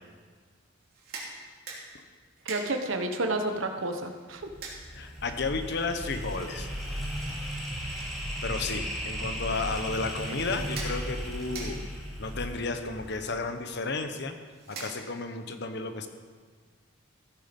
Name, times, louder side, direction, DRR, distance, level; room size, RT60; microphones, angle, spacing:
sound 1, 0.8-15.4, right 3 dB, 50° right, 2.9 m, -47 dB
voice 1, 2.4-4.5, right 2 dB, 75° right, 5 dB, 1.3 m, -30 dB
sound 2, 4.4-13.5, equal, ahead, 2.9 m, -36 dB
voice 2, 4.9-6.7 8.4-11.8 12.2-14.4 14.7-16.1, left 3 dB, 60° left, 7 dB, 1.0 m, -33 dB
15.0 x 9.2 x 5.4 m, 1.6 s
head